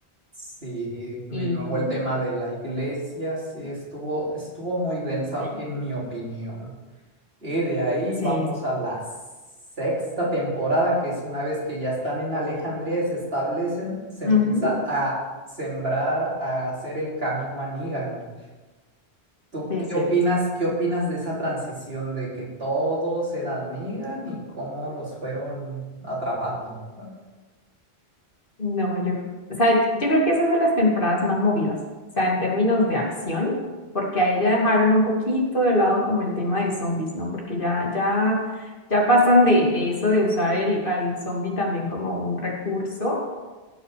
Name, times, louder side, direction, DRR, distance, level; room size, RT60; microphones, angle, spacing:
voice 1, 0.4-6.7 7.4-9.0 9.8-15.1 15.6-18.2 19.5-22.3 22.6-27.1, right 1 dB, 70° right, -7 dB, 4.5 m, -27 dB
voice 2, 1.3-1.8 5.4-5.5 8.2-8.5 14.2-14.7 19.7-20.1 28.6-29.2 29.6-31.8 32.2-33.5 33.9-43.2, left 1 dB, 55° left, -2 dB, 2.8 m, -22 dB
17.5 x 6.7 x 5.1 m, 1.2 s
omnidirectional pair, 1.1 m